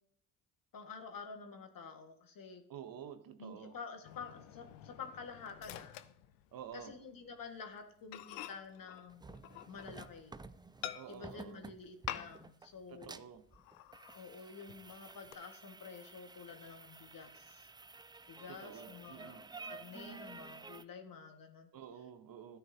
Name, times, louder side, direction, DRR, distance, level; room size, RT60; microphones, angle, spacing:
voice 1, 0.7-2.6 3.4-6.0 6.7-9.3 9.7-10.4 11.1-13.2 14.1-17.7 18.3-21.7, left 5 dB, 50° left, 5 dB, 1.8 m, -49 dB
voice 2, 2.7-3.7 6.5-6.9 10.9-11.6 12.9-13.4 18.5-19.5 21.7-22.6, right 9 dB, 50° right, 10 dB, 1.1 m, -50 dB
Microwave oven, 4.0-6.9 7.2-7.5 7.8-7.9 8.1-10.2 10.8-11.4 12.1-12.7 12.9-13.0 13.5-14.3 14.7-15.3, left 13 dB, 75° left, 0.6 m, -48 dB
sound 1, 9.1-20.8, right 4 dB, 10° right, 0.4 m, -52 dB
13.5 x 9.0 x 2.8 m, 0.65 s
hypercardioid pair, 50°, 43 cm